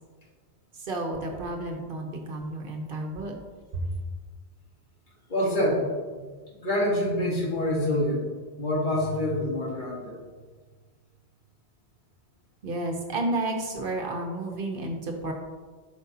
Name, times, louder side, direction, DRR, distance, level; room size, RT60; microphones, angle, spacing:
voice 1, 0.8-3.4 3.7-3.9 12.6-15.3, right 2 dB, 60° right, 3 dB, 0.9 m, -31 dB
voice 2, 5.3-5.9 6.2-6.3 6.6-8.3 8.6-10.2, left 1 dB, 50° left, -3 dB, 1.5 m, -26 dB
7.7 x 5.2 x 2.7 m, 1.4 s
omnidirectional pair, 1.1 m